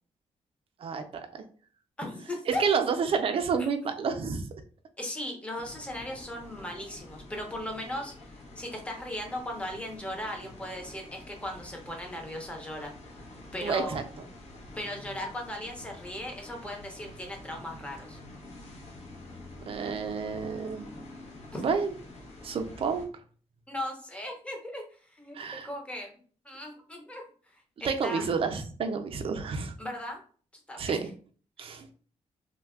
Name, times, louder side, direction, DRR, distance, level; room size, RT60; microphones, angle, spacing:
voice 1, 0.8-1.3 2.5-4.5 13.6-14.0 19.7-20.9 21.6-21.9 22.4-23.1 25.3-25.7 27.8-29.7 30.8-31.0 31.6-31.9, right 5 dB, 50° right, 6 dB, 0.4 m, -29 dB
voice 2, 2.0-2.6 5.0-8.3 8.6-12.9 13.5-14.0 14.8-18.2 21.5-21.6 23.7-24.8 25.1-26.1 26.4-27.2 27.8-28.2 29.8-30.2 30.7-31.0, left 1 dB, 10° left, 2 dB, 0.6 m, -37 dB
sound 1, 5.5-23.1, left 2 dB, 70° left, 0.8 m, -48 dB
3.2 x 2.1 x 2.3 m, 0.42 s
wide cardioid pair, 140°, 12 cm